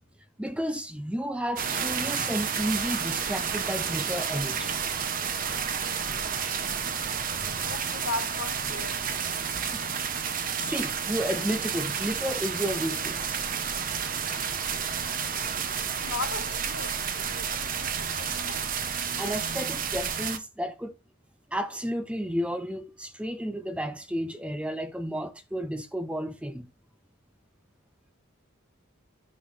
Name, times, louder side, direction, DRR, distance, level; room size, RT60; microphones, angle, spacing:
voice 1, 0.4-4.8 10.4-13.4 19.2-21.0 21.5-26.7, equal, 5° right, 0.5 m, -32 dB
sound 1, 1.6-20.4, right 7 dB, 40° right, 0.9 m, -31 dB
voice 2, 7.6-9.0 15.8-18.7, left 4 dB, 65° left, 1.0 m, -37 dB
10.0 x 3.6 x 6.3 m
head